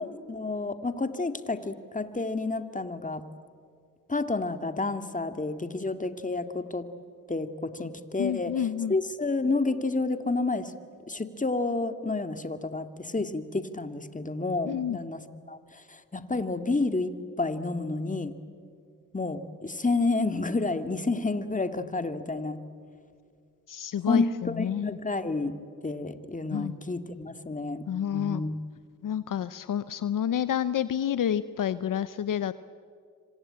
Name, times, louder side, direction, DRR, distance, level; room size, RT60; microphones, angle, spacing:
voice 1, 0.0-3.2 4.1-6.8 7.3-10.7 11.1-18.3 19.1-22.6 24.1-25.6 25.8-28.6, left 3 dB, 25° left, 9 dB, 2.1 m, -30 dB
voice 2, 8.2-8.9 14.7-15.0 23.7-25.0 26.5-26.7 27.9-28.4 29.0-32.5, left 9 dB, 65° left, 15 dB, 0.8 m, -29 dB
26.5 x 25.5 x 8.8 m, 2.2 s
cardioid pair, 60°, 34 cm